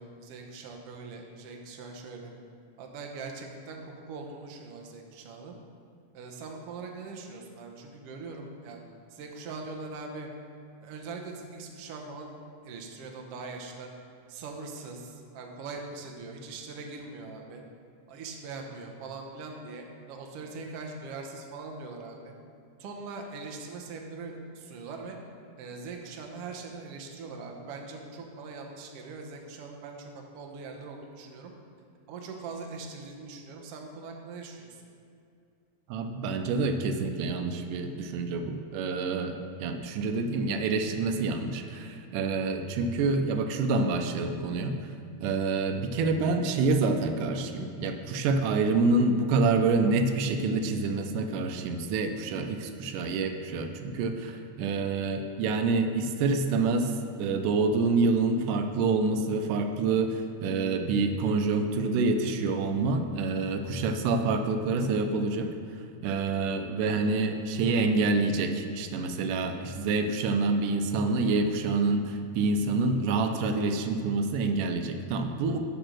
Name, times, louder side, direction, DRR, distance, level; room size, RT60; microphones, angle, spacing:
voice 1, 0.0-2.3 2.8-5.6 6.1-8.8 9.1-10.3 10.8-12.4 12.6-13.9 14.3-17.6 18.1-22.3 22.8-25.2 25.6-31.5 32.1-34.8, right 4 dB, 70° right, 2 dB, 1.5 m, -41 dB
voice 2, 35.9-44.8 45.2-56.9 57.2-65.5 66.0-75.6, right 3 dB, 85° right, 6 dB, 2.2 m, -27 dB
10.0 x 4.4 x 6.2 m, 2.4 s
omnidirectional pair, 3.6 m